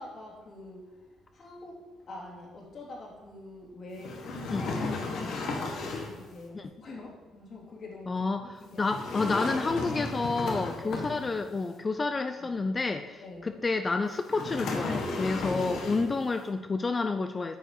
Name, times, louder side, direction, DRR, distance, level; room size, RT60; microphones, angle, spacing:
voice 1, 0.0-9.5 9.8-10.2 10.8-11.0 12.4-12.6 13.2-13.6 15.5-15.6, left 2 dB, 55° left, -3 dB, 3.1 m, -45 dB
sound 1, 4.0-6.2 8.8-11.5 14.2-16.2, left 3 dB, 80° left, 1.6 m, -34 dB
voice 2, 8.1-8.4 8.8-17.6, left 3 dB, 30° left, 8 dB, 0.5 m, -29 dB
9.2 x 6.7 x 4.8 m, 1.2 s
cardioid pair, 90°, 0 cm